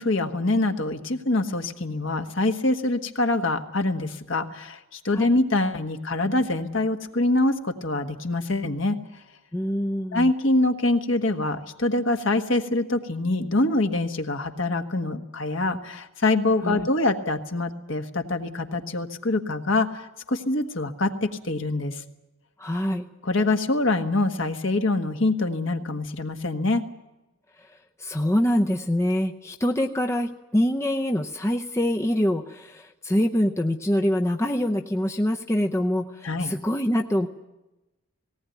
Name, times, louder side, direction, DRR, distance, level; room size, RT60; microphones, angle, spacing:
voice 1, 0.0-9.0 10.1-22.0 23.2-26.9 36.2-36.5, left 2 dB, 60° left, 6 dB, 1.5 m, -25 dB
voice 2, 9.5-10.3 16.6-16.9 22.6-23.1 27.6-37.3, equal, 15° left, 3 dB, 0.7 m, -25 dB
18.5 x 18.5 x 9.2 m, 1.0 s
head